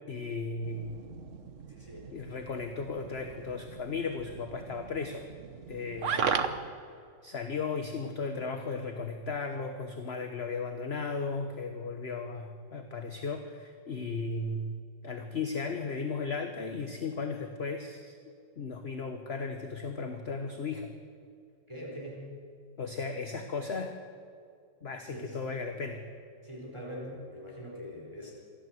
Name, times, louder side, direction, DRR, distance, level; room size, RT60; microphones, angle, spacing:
voice 1, 0.1-0.9 2.1-5.3 5.7-6.5 7.2-14.7 15.0-18.1 18.6-20.9 22.8-23.9 24.8-26.0, left 4 dB, 40° left, 5 dB, 1.3 m, -36 dB
sound 1, 0.6-6.7, right 6 dB, 50° right, 1.2 m, -37 dB
voice 2, 1.7-2.1 6.0-6.3 21.7-22.3 25.0-25.4 26.4-28.3, equal, 15° right, -3 dB, 4.6 m, -43 dB
27.5 x 12.5 x 7.9 m, 2.2 s
omnidirectional pair, 1.9 m